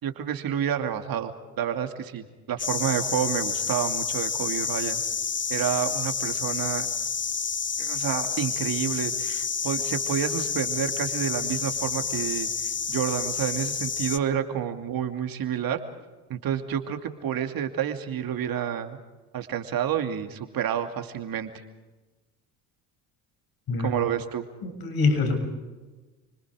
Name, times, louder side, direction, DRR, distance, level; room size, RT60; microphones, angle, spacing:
voice 1, 0.0-1.3 1.6-5.0 5.5-6.9 7.8-12.5 12.9-15.8 16.3-19.0 19.3-21.5 23.8-24.4, right 9 dB, 55° right, 6 dB, 2.6 m, -29 dB
sound 1, 2.6-14.2, left 6 dB, 30° left, 1.3 m, -29 dB
voice 2, 24.6-25.4, left 4 dB, 60° left, 6 dB, 7.6 m, -24 dB
29.5 x 25.5 x 4.9 m, 1.2 s
supercardioid pair, 70°, 41 cm